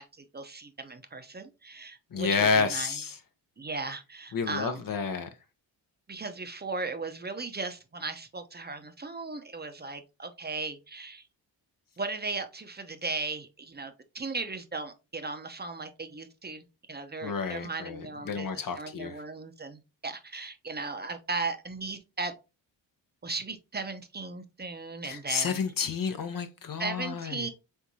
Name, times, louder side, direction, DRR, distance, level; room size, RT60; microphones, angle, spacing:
voice 1, 0.0-3.0 3.6-4.9 6.1-11.2 12.0-22.3 23.2-25.6 26.8-27.5, right 3 dB, 20° right, 0.7 m, -37 dB
voice 2, 2.1-3.1 4.3-5.3 17.2-19.2 25.0-27.5, left 5 dB, 50° left, 0.8 m, -30 dB
4.5 x 3.6 x 2.7 m
cardioid pair, 75°, 44 cm